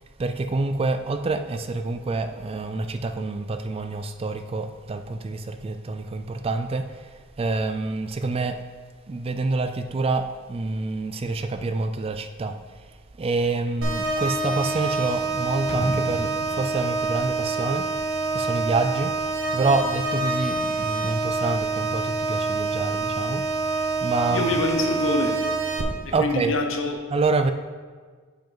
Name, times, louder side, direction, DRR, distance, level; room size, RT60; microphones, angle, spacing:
voice 1, 0.2-7.1 7.4-8.6 9.1-12.5 13.2-17.8 18.3-19.1 19.5-23.4 24.0-24.5 26.1-26.5 27.1-27.5, right 3 dB, 30° right, 8 dB, 0.3 m, -27 dB
sound 1, 13.8-25.8, right 3 dB, 70° right, 1.0 m, -27 dB
sound 2, 15.7-18.5 18.8-18.9, left 2 dB, 55° left, 0.6 m, -36 dB
voice 2, 24.3-25.3 26.0-27.0, left 2 dB, 70° left, 3 dB, 1.0 m, -25 dB
8.9 x 5.3 x 3.9 m, 1.5 s
head